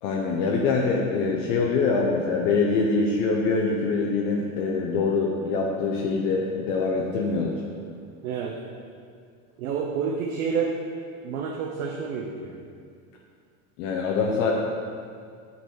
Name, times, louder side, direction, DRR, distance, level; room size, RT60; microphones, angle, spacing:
voice 1, 0.0-7.6 13.8-14.5, left 4 dB, 60° left, -1 dB, 0.8 m, -24 dB
voice 2, 8.2-8.6 9.6-10.9 11.2-12.6, right 6 dB, 85° right, 0 dB, 0.7 m, -29 dB
6.7 x 4.1 x 4.7 m, 2.2 s
supercardioid pair, 120°, 42 cm